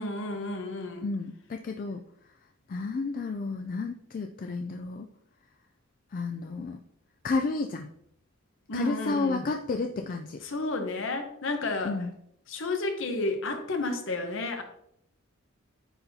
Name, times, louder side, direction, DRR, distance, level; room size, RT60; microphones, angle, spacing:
voice 1, 0.0-1.1 8.7-9.5 10.4-12.0 12.5-14.6, left 2 dB, 60° left, 5 dB, 0.9 m, -31 dB
voice 2, 1.0-2.0 2.7-5.1 6.1-6.8 7.2-7.9 8.7-10.4 11.8-12.1, left 3 dB, 40° left, 5 dB, 0.3 m, -31 dB
9.8 x 4.0 x 2.7 m, 0.71 s
head